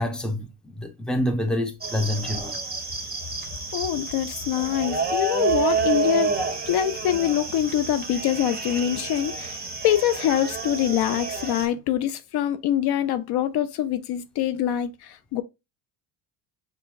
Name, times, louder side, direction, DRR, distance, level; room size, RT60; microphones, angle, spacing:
voice 1, 0.0-2.6, left 1 dB, ahead, 0.6 m, -27 dB
sound 1, 1.8-11.7, right 4 dB, 20° right, 1.0 m, -29 dB
voice 2, 3.7-6.4 6.7-15.4, left 11 dB, 60° left, 0.5 m, -24 dB
5.6 x 2.4 x 2.4 m
supercardioid pair, 85°, 45 cm